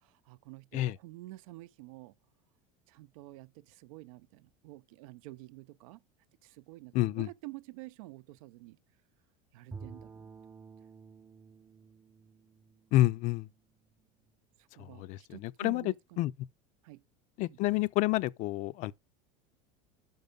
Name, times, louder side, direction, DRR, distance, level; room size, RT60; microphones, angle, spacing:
voice 1, 0.0-2.1 2.9-6.0 6.4-8.8 9.5-10.3 14.7-16.3 16.8-17.0 17.5-17.6, right 20 dB, 80° right, 0.6 m, -49 dB
voice 2, 6.9-7.3 12.9-13.5 14.8-16.3 17.4-18.9, left 16 dB, 45° left, 0.4 m, -29 dB
Bowed string instrument, 9.7-13.9, right 4 dB, 15° right, 0.5 m, -51 dB
5.6 x 5.4 x 5.1 m
supercardioid pair, 140°, 17 cm